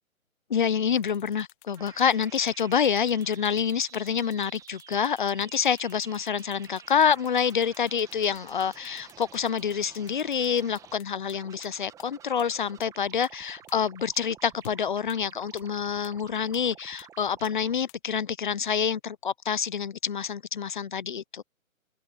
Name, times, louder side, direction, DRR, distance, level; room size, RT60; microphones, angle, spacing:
voice 1, 0.5-21.4, left 7 dB, 35° left, 0.5 m, -27 dB
sound 1, 1.0-11.3 11.6-11.7 12.0-12.1 12.4-12.5 12.8-12.9 13.2-13.3 13.7-13.8 14.2-14.3 14.6-14.7 15.1-15.2 15.6-15.7 16.0-16.1 16.5-16.6 17.0-17.1 17.4-17.5 17.9-18.0, left 26 dB, 20° left, 1.7 m, -54 dB
sound 2, 1.8-11.0 11.3-17.8, right 9 dB, 10° right, 1.2 m, -52 dB
figure-of-eight pair, 145°, 42 cm